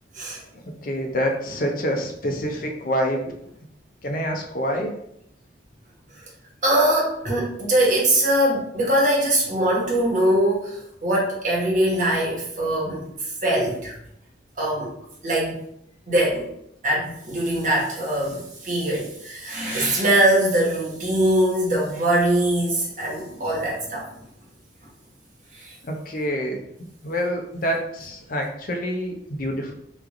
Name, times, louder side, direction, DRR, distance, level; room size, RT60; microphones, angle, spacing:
voice 1, 0.5-3.3 4.0-5.0 25.8-26.6 27.0-29.8, equal, 50° left, 2 dB, 0.6 m, -27 dB
voice 2, 6.6-14.0 14.6-14.9 15.2-15.6 16.1-16.5 16.8-24.1 25.5-25.7, right 1 dB, 45° right, -4 dB, 1.1 m, -22 dB
3.1 x 2.5 x 3.6 m, 0.74 s
head